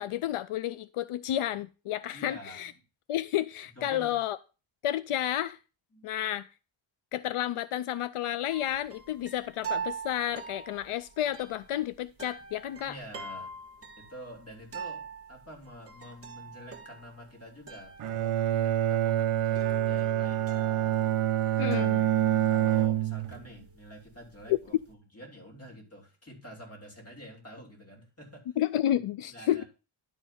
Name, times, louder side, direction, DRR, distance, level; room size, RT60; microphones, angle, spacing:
voice 1, 0.0-2.7 3.1-4.4 4.8-5.6 6.0-6.5 7.1-13.0 21.6-22.0 24.5-24.6 28.6-29.6, left 12 dB, 85° left, 0.6 m, -31 dB
voice 2, 2.1-2.7 3.7-4.2 5.9-6.1 12.4-12.5 12.8-13.5 14.0-21.0 21.5-21.9 22.4-28.6 29.3-29.6, equal, 30° left, 3.2 m, -48 dB
sound 1, 8.5-24.9, right 5 dB, 25° right, 1.5 m, -43 dB
Bowed string instrument, 18.0-23.5, right 12 dB, 80° right, 0.8 m, -26 dB
11.0 x 4.7 x 5.7 m
wide cardioid pair, 145°, 50 cm